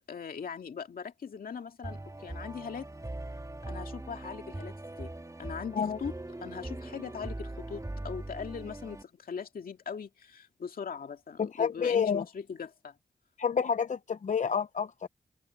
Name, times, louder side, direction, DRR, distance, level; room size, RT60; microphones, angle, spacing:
voice 1, 0.1-2.9 3.7-5.1 5.4-6.1 6.4-13.0, left 6 dB, 80° left, 2.2 m, -40 dB
sound 1, 1.8-9.0, right 2 dB, 20° right, 2.7 m, -41 dB
voice 2, 11.4-12.2 13.4-15.1, left 6 dB, 55° left, 0.6 m, -29 dB
open air
cardioid pair, 55°, 15 cm